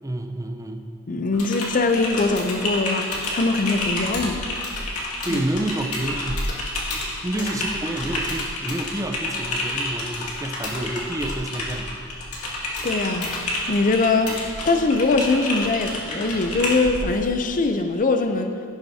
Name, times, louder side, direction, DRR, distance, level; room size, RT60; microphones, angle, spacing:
voice 1, 0.0-0.9 5.2-6.5 6.8-11.9, right 1 dB, 15° right, 4 dB, 0.6 m, -29 dB
voice 2, 1.1-4.5 5.3-5.4 7.4-7.5 12.8-18.6, left 3 dB, 35° left, 7 dB, 0.5 m, -22 dB
Typing, 1.3-17.0, left 1 dB, 80° left, 2.1 m, -29 dB
17.0 x 11.0 x 2.8 m, 2.4 s
head